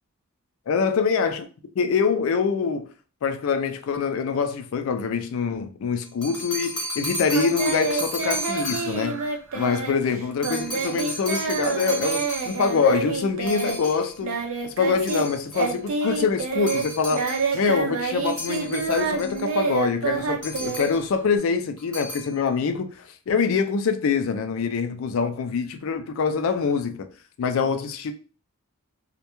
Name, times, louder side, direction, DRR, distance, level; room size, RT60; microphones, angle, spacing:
voice 1, 0.7-1.4 1.8-2.9 3.2-9.2 9.5-17.3 17.5-27.1 27.4-28.1, left 5 dB, 65° left, 0.3 m, -25 dB
sound 1, 6.0-9.1 10.4-12.9 13.5-14.2 15.1-15.8 16.7-17.5 18.2-19.5 20.4-21.1 21.8-22.3, equal, 5° left, 0.8 m, -34 dB
Singing, 7.3-15.3 15.5-21.4, right 4 dB, 65° right, 0.5 m, -28 dB
2.2 x 2.1 x 2.9 m
head